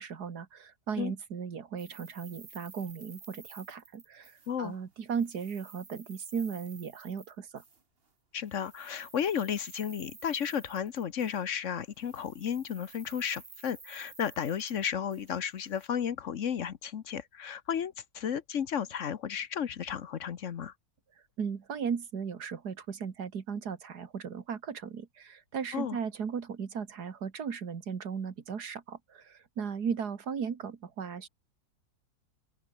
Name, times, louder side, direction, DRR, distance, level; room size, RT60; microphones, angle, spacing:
voice 1, 0.0-7.6 21.4-31.3, right 6 dB, 90° right, 2.3 m, -36 dB
sound 1, 1.8-4.8 5.0-7.8 8.4-11.7 11.9-15.9, right 4 dB, 40° right, 2.1 m, -53 dB
voice 2, 8.3-20.7 25.7-26.0, left 8 dB, 55° left, 1.2 m, -33 dB
open air
omnidirectional pair, 1.7 m